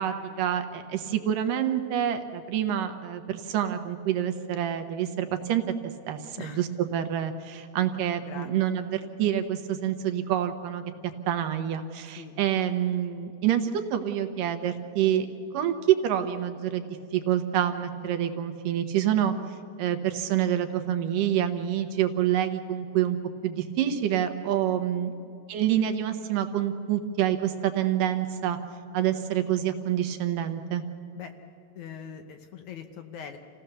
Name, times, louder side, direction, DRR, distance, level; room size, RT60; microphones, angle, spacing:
voice 1, 0.0-5.6 6.1-10.8 11.3-15.3 15.5-19.3 19.8-23.2 23.4-25.1 25.5-28.6 28.9-30.8, right 10 dB, 75° right, 8 dB, 2.5 m, -27 dB
voice 2, 31.8-33.4, left 7 dB, 70° left, 6 dB, 2.0 m, -42 dB
27.5 x 16.5 x 6.8 m, 2.6 s
omnidirectional pair, 4.1 m